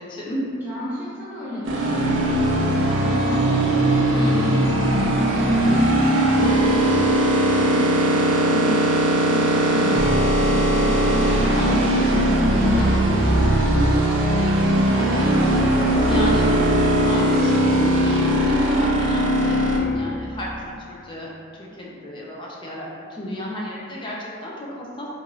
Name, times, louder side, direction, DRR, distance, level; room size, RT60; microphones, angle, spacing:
voice 1, 0.0-0.5 4.1-4.6 8.5-8.9 9.7-10.0 11.5-12.1 12.6-12.9 15.0-15.3 15.9-16.6 17.0-21.3 21.6-25.1, left 1 dB, 25° left, -4 dB, 0.3 m, -30 dB
voice 2, 0.6-8.8 9.0-9.9 10.3-12.6 13.2-16.8, left 1 dB, 10° right, -11 dB, 0.8 m, -32 dB
sound 1, 1.6-19.8, right 1 dB, 75° right, 0.4 m, -19 dB
2.5 x 2.4 x 2.9 m, 2.5 s
head